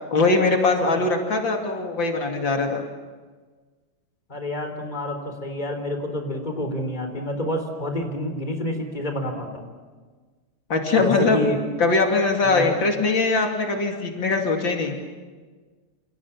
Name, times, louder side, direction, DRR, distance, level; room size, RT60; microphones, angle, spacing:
voice 1, 0.1-2.8 10.7-11.4 11.8-15.0, left 3 dB, 75° left, 3 dB, 3.3 m, -21 dB
voice 2, 4.3-9.7 11.0-11.6 12.4-12.7, left 1 dB, 20° left, 5 dB, 3.8 m, -28 dB
28.5 x 28.0 x 7.3 m, 1.4 s
omnidirectional pair, 2.1 m